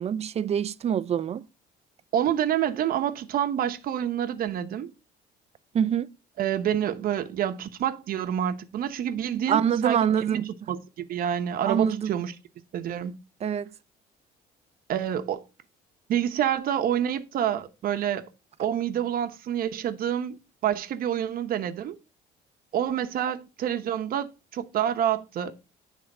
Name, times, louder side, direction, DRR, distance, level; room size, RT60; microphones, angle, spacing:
voice 1, 0.0-1.4 5.7-6.1 9.5-10.5 11.6-12.2 13.4-13.7, right 8 dB, 40° right, 0.5 m, -25 dB
voice 2, 2.1-4.9 6.4-12.3 12.7-13.1 14.9-15.4 16.1-18.2 18.6-22.0 22.7-25.6, right 10 dB, 60° right, 1.0 m, -28 dB
10.0 x 3.5 x 5.4 m
cardioid pair, 110°, 17 cm